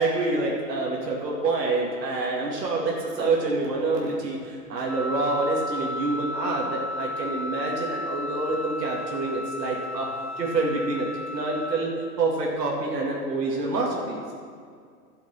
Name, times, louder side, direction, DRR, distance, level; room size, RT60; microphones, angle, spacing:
voice 1, 0.0-10.1 10.4-11.1 11.3-11.9 12.2-14.3, right 3 dB, 85° right, -3 dB, 2.4 m, -27 dB
Wind instrument woodwind instrument, 4.9-11.8, left 1 dB, ahead, 0.9 m, -33 dB
12.5 x 7.3 x 5.7 m, 2.1 s
hypercardioid pair, 125°, 48 cm